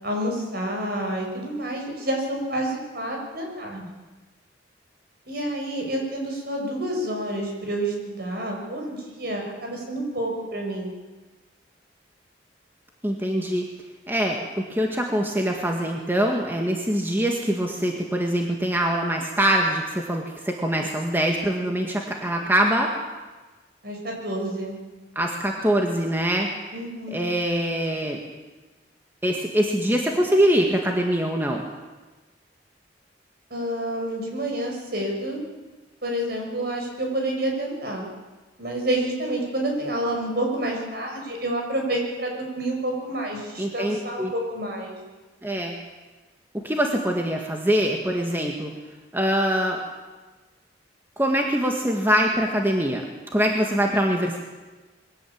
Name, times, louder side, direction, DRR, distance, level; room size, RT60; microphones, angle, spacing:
voice 1, 0.0-3.9 5.3-10.9 23.8-24.8 26.7-27.2 33.5-35.4 36.0-38.0 38.6-45.0, right 1 dB, 60° right, 1 dB, 6.6 m, -29 dB
voice 2, 13.0-13.7 14.1-22.9 25.2-26.5 27.1-28.2 29.2-31.6 43.6-44.3 45.4-45.8 46.6-48.7 49.1-49.8 51.2-53.0 53.3-54.4, right 1 dB, 10° right, 1 dB, 1.9 m, -23 dB
22.5 x 17.0 x 8.8 m, 1.2 s
head